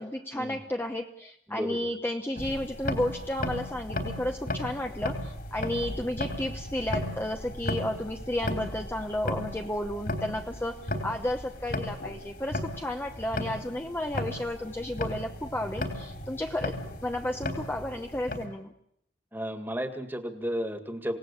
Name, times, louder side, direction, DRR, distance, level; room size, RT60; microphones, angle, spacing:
voice 1, 0.0-18.7, left 1 dB, 10° left, 4 dB, 0.9 m, -32 dB
voice 2, 1.5-1.9 19.3-21.2, equal, 10° right, 9 dB, 1.9 m, -33 dB
sound 1, 2.4-18.4, left 1 dB, 55° left, 4.0 m, -35 dB
27.0 x 18.0 x 8.3 m, 0.74 s
head